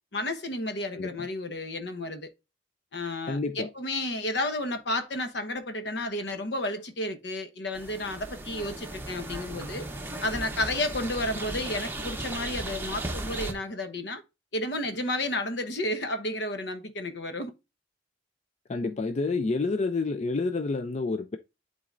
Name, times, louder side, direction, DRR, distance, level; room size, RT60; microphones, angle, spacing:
voice 1, 0.1-2.3 2.9-9.8 10.2-14.2 14.5-17.5, left 1 dB, 65° left, 1.1 m, -32 dB
voice 2, 3.3-3.7 18.7-21.4, left 3 dB, 35° left, 0.4 m, -28 dB
sound 1, 7.7-13.5, right 2 dB, 10° right, 0.8 m, -36 dB
11.5 x 4.0 x 2.5 m
head